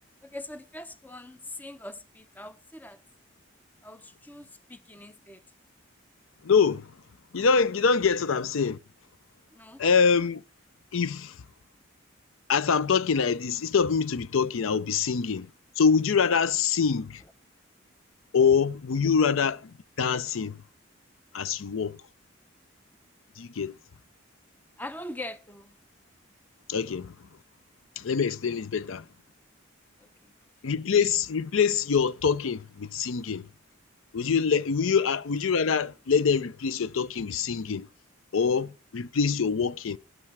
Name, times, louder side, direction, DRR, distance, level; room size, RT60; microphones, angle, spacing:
voice 1, 0.2-3.0 3.8-5.4 9.5-9.8 19.0-19.1 24.8-25.7 30.0-30.3, left 1 dB, 10° left, 0.6 m, -42 dB
voice 2, 6.4-6.9 7.3-8.8 9.8-10.4 10.9-11.3 12.5-15.5 15.8-17.2 18.3-20.6 21.3-22.0 23.4-23.7 26.7-27.1 28.0-29.0 30.6-33.5 34.1-37.9 38.3-40.0, left 6 dB, 85° left, 0.5 m, -25 dB
13.0 x 9.7 x 4.6 m
head